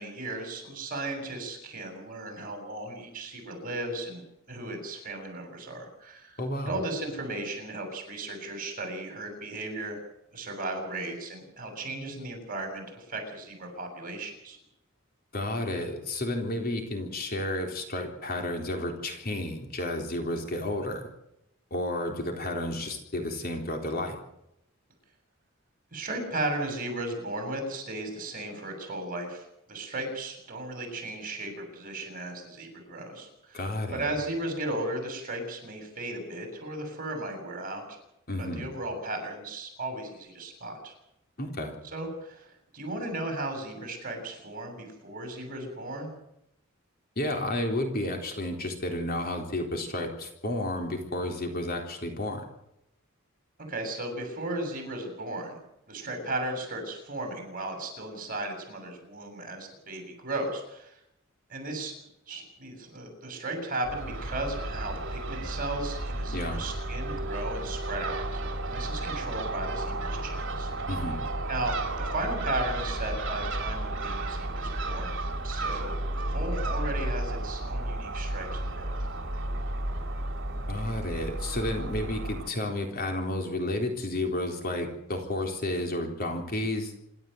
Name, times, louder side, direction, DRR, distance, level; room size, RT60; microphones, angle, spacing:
voice 1, 0.0-10.0 10.3-14.6 25.9-33.6 33.9-38.0 38.4-40.9 41.9-46.1 53.7-55.6 55.9-60.9 61.5-61.9 62.3-70.7 71.5-75.2 75.4-78.9, right 2 dB, 45° right, 4 dB, 7.5 m, -36 dB
voice 2, 6.4-6.7 15.3-21.1 21.7-24.2 33.5-34.1 38.3-38.7 41.4-41.8 47.2-52.4 66.3-66.6 70.9-71.2 80.7-86.9, left 1 dB, 50° left, 3 dB, 3.8 m, -31 dB
Crow / Gull seagull, 63.8-82.5, right 1 dB, 65° right, 3.1 m, -33 dB
27.0 x 12.5 x 8.0 m, 0.81 s
head